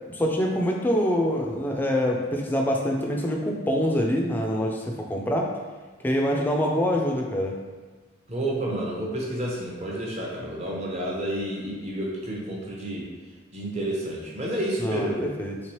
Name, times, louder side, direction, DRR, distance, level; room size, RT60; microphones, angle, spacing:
voice 1, 0.1-5.5 6.0-7.6 14.8-15.6, equal, 10° left, -1 dB, 0.3 m, -25 dB
voice 2, 8.3-13.1 13.5-15.2, right 1 dB, 35° right, -3 dB, 0.7 m, -30 dB
3.3 x 3.1 x 2.9 m, 1.4 s
head